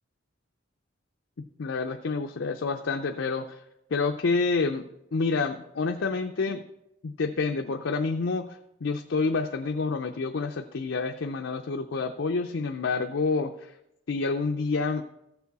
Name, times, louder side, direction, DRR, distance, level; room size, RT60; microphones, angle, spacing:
voice 1, 1.6-3.6 3.9-6.7 7.0-13.7 14.1-15.0, left 4 dB, 75° left, 5 dB, 0.5 m, -28 dB
14.0 x 6.9 x 4.1 m, 0.85 s
head